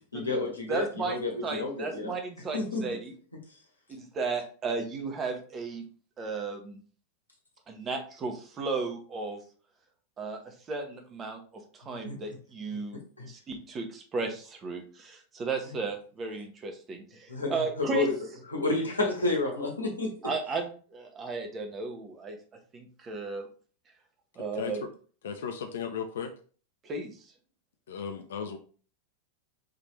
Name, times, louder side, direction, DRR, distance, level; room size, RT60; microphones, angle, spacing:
voice 1, 0.1-2.1 2.5-2.8 12.0-12.2 13.2-13.3 17.3-18.1 18.5-20.1, left 3 dB, 85° left, 1.3 m, -30 dB
voice 2, 0.7-3.1 3.9-5.8 6.2-6.8 7.7-9.4 10.2-13.0 13.3-18.1 20.2-22.4 22.7-23.5 24.4-24.9 26.8-27.2, right 4 dB, 25° right, 1.1 m, -35 dB
voice 3, 25.2-26.3 27.9-28.6, left 7 dB, 70° left, 0.5 m, -35 dB
4.9 x 3.2 x 3.1 m
figure-of-eight pair, 90°, 0 cm